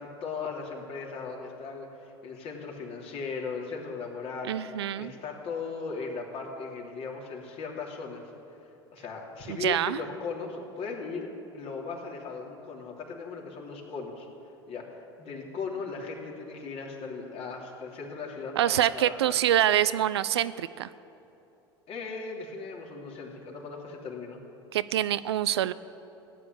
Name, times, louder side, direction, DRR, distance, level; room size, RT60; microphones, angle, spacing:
voice 1, 0.0-4.7 5.0-8.2 8.9-14.3 14.7-19.4 21.9-24.4, left 4 dB, 50° left, -1 dB, 3.2 m, -38 dB
voice 2, 4.5-5.1 9.5-10.0 18.6-20.9 24.7-25.7, right 12 dB, 80° right, 16 dB, 0.5 m, -25 dB
16.0 x 9.0 x 9.4 m, 2.8 s
hypercardioid pair, 80°, 14 cm